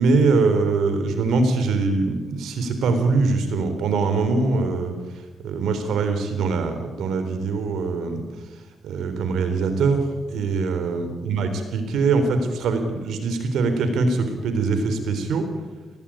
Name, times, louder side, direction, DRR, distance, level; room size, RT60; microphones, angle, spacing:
voice 1, 0.0-4.9 5.4-8.2 8.8-15.5, right 4 dB, 80° right, 8 dB, 3.8 m, -22 dB
19.5 x 18.0 x 8.9 m, 1.2 s
cardioid pair, 70°, 0 cm